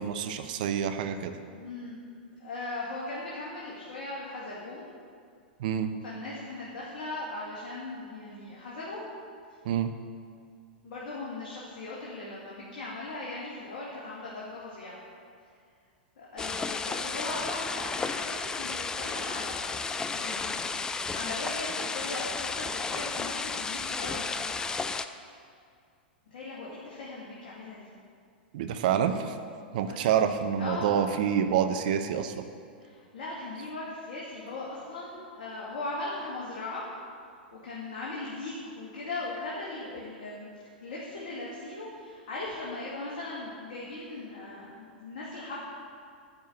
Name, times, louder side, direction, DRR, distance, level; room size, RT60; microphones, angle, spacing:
voice 1, 0.0-1.3 5.6-5.9 9.6-9.9 28.5-29.4 29.7-32.4, right 8 dB, 55° right, 8 dB, 0.7 m, -27 dB
voice 2, 1.5-2.0 2.4-4.9 6.0-9.1 9.5-9.6 10.8-15.0 16.2-19.9 20.1-24.4 26.3-27.9 29.9-30.0 30.6-31.0 32.8-36.8 37.5-40.5 40.8-45.6, left 2 dB, 55° left, -6 dB, 2.1 m, -39 dB
sound 1, 16.4-25.1, left 4 dB, 15° left, 0.4 m, -33 dB
9.7 x 4.6 x 7.9 m, 2.3 s
figure-of-eight pair, 100°, 5 cm